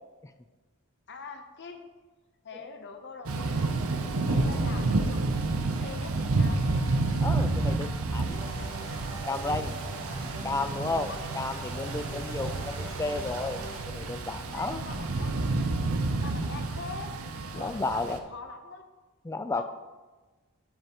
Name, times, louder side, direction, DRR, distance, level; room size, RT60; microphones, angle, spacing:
voice 1, 1.1-1.8 2.4-3.8 4.2-6.7 11.1-11.2 14.5-15.8 16.2-17.1 17.5-18.9 19.5-19.6, left 4 dB, 55° left, 5 dB, 0.8 m, -43 dB
Thunder / Rain, 3.3-18.2, right 3 dB, 70° right, 0.7 m, -30 dB
voice 2, 7.2-8.4 9.3-9.8 10.4-14.8 16.3-16.4 17.5-18.2 19.2-19.6, left 3 dB, 15° left, 9 dB, 0.3 m, -33 dB
sound 1, 8.3-13.8, right 2 dB, 45° right, 2.9 m, -41 dB
12.0 x 5.5 x 3.0 m, 1.3 s
head